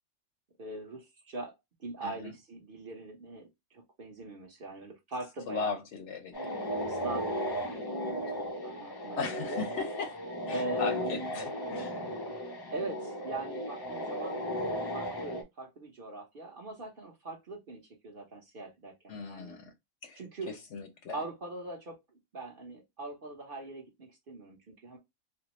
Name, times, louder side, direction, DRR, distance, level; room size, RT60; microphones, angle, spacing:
voice 1, 0.6-1.5 1.8-5.7 6.9-9.5 10.5-11.4 12.7-14.4 14.9-19.6 20.1-20.5 21.1-22.0 22.3-25.0, right 2 dB, 45° right, 1.0 m, -41 dB
voice 2, 2.0-2.3 5.5-6.5 6.8-7.0 9.2-10.2 10.5-12.0 19.1-19.7 20.0-20.2 20.5-21.2, left 5 dB, 65° left, 0.8 m, -38 dB
sound 1, 6.3-15.4, equal, 40° left, 0.3 m, -35 dB
3.4 x 2.1 x 2.9 m
omnidirectional pair, 1.4 m